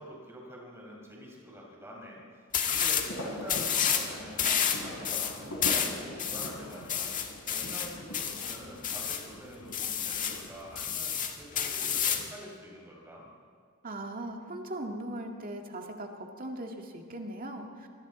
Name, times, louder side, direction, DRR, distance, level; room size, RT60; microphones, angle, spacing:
voice 1, 0.0-13.3, equal, 10° right, -2 dB, 5.4 m, -46 dB
sound 1, 2.5-3.1 3.5-4.1 4.4-9.3 9.7-10.4 10.8-12.3, left 8 dB, 40° left, 1.7 m, -30 dB
sound 2, 2.9-10.5, left 1 dB, 80° left, 4.0 m, -42 dB
voice 2, 13.8-17.9, right 1 dB, 40° right, 2 dB, 2.0 m, -39 dB
27.0 x 23.5 x 4.2 m, 2.2 s
head